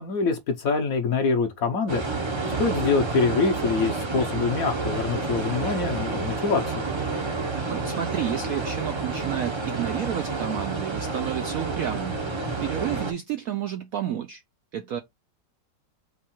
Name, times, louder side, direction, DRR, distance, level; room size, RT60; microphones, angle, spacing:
voice 1, 0.0-2.0 2.6-6.9, left 4 dB, 60° left, 1.0 m, -25 dB
sound 1, 1.9-13.1, right 3 dB, 30° right, 0.5 m, -29 dB
voice 2, 7.7-12.2 12.6-14.4 14.7-15.0, right 10 dB, 75° right, 0.8 m, -30 dB
4.6 x 2.4 x 4.2 m
omnidirectional pair, 2.0 m